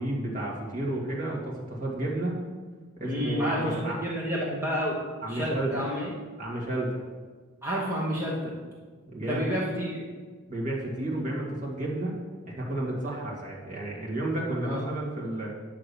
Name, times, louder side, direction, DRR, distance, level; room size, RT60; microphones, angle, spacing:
voice 1, 0.0-2.4 3.0-4.0 5.2-5.8 6.4-7.0 9.1-9.5 10.5-12.2 12.4-15.5, right 1 dB, 35° right, -4 dB, 2.0 m, -31 dB
voice 2, 3.0-5.0 5.3-6.1 7.6-8.5 9.2-10.1 14.6-14.8, equal, 10° right, -6 dB, 1.2 m, -30 dB
9.8 x 3.7 x 6.9 m, 1.4 s
head